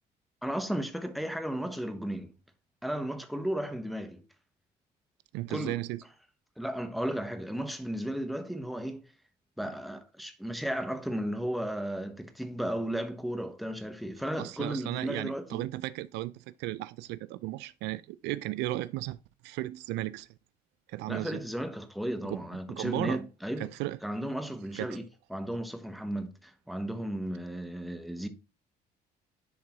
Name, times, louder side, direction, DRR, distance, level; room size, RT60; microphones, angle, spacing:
voice 1, 0.4-2.3 2.8-4.2 5.5-5.8 6.6-9.1 9.6-15.7 21.1-23.7 24.0-25.0 25.3-28.3, equal, ahead, 1.0 m, -34 dB
voice 2, 5.3-6.0 14.4-19.2 19.4-20.3 20.9-21.4 22.2-23.2 23.6-24.0 24.7-25.0, right 17 dB, 90° right, 0.4 m, -35 dB
10.5 x 3.7 x 3.0 m
cardioid pair, 110°, 17 cm